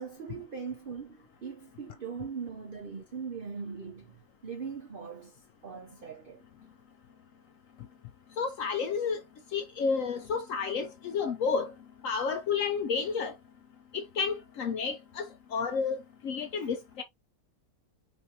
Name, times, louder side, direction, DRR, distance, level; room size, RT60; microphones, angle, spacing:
voice 1, 0.0-6.4 16.5-16.7, right 6 dB, 70° right, 0.5 m, -41 dB
voice 2, 8.4-9.2 9.5-11.7 12.0-13.3 13.9-15.3 15.5-17.0, left 5 dB, 70° left, 0.8 m, -31 dB
5.7 x 2.7 x 2.7 m
omnidirectional pair, 1.8 m